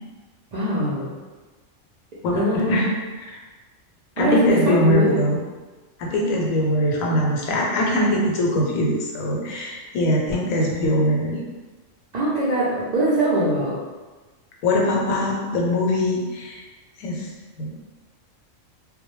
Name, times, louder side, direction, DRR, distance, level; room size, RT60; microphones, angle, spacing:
voice 1, 0.5-1.1 2.3-2.9 4.2-5.3 12.1-13.8, right 1 dB, 70° right, -9 dB, 0.4 m, -22 dB
voice 2, 2.2-2.9 3.2-3.3 4.2-5.4 6.0-11.4 14.6-16.6 17.0-17.3 17.6-17.7, left 1 dB, 85° left, -1 dB, 1.0 m, -22 dB
2.2 x 2.0 x 3.0 m, 1.3 s
omnidirectional pair, 1.4 m